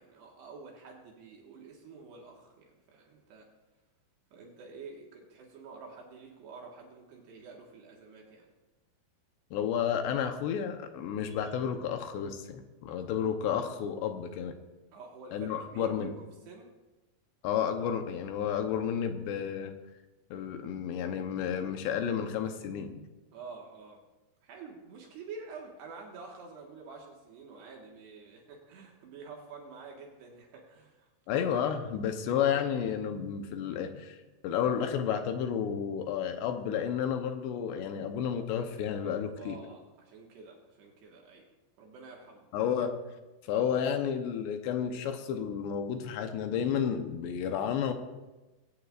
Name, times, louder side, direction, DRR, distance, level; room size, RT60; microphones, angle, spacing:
voice 1, 0.0-3.5 4.3-8.5 14.9-16.7 23.3-24.0 24.4-31.1 39.4-41.5 41.8-42.5, right 4 dB, 70° right, -1 dB, 3.6 m, -48 dB
voice 2, 9.5-14.5 15.3-16.1 17.4-19.7 20.3-23.1 31.3-39.6 42.5-42.9 43.4-47.9, left 8 dB, 75° left, 6 dB, 3.0 m, -31 dB
21.5 x 17.0 x 2.5 m, 1.1 s
omnidirectional pair, 5.1 m